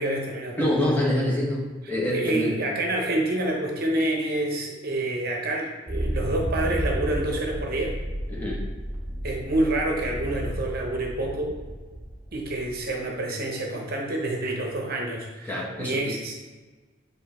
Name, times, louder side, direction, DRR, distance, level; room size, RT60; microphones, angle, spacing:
voice 1, 0.0-0.6 1.8-7.9 9.2-11.5 12.3-16.3, right 1 dB, 50° right, 0 dB, 0.9 m, -28 dB
voice 2, 0.6-2.6 8.3-8.7 15.5-16.1, left 1 dB, 10° left, -4 dB, 1.3 m, -26 dB
sound 1, 5.9-12.9, equal, 15° right, 1.5 m, -32 dB
8.2 x 3.5 x 4.2 m, 1.3 s
head